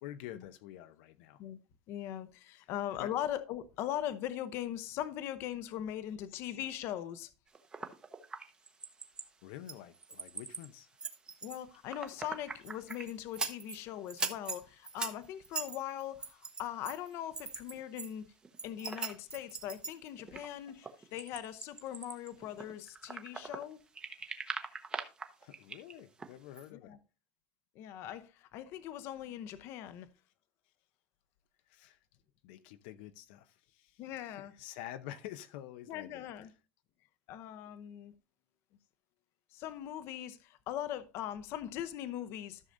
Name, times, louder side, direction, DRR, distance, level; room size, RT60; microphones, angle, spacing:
voice 1, 0.0-1.4 2.5-2.7 3.0-3.1 9.4-10.9 25.4-27.0 31.7-32.0 32.4-36.3, left 12 dB, 85° left, 0.7 m, -48 dB
voice 2, 1.9-7.3 11.4-18.2 18.6-23.8 26.7-27.0 27.7-30.1 34.0-34.5 35.9-36.5 37.3-38.1 39.5-42.6, left 11 dB, 50° left, 0.7 m, -40 dB
sound 1, 7.5-9.3 9.7-10.7 11.0-13.8 14.1-18.1 18.4-23.7 23.9-26.3 26.6-26.7, right 4 dB, 15° right, 0.8 m, -41 dB
13.5 x 6.4 x 2.6 m
cardioid pair, 160°, 5 cm